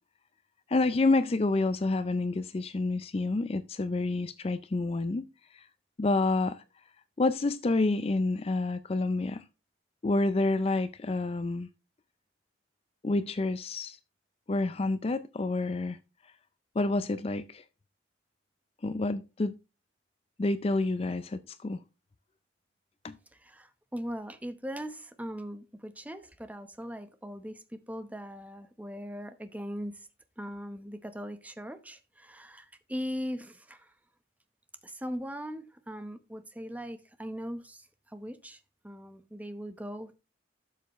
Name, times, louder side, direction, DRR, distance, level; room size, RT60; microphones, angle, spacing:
voice 1, 0.7-5.3 5.5-5.6 6.0-6.6 7.2-9.4 10.0-11.7 13.0-14.0 14.5-16.0 16.8-17.6 18.8-19.5 20.4-21.8 23.0-23.2, left 2 dB, 30° left, 0.4 m, -28 dB
voice 2, 23.3-30.1 30.4-33.9 34.8-40.1, equal, 10° right, 0.9 m, -40 dB
12.5 x 6.8 x 3.1 m
head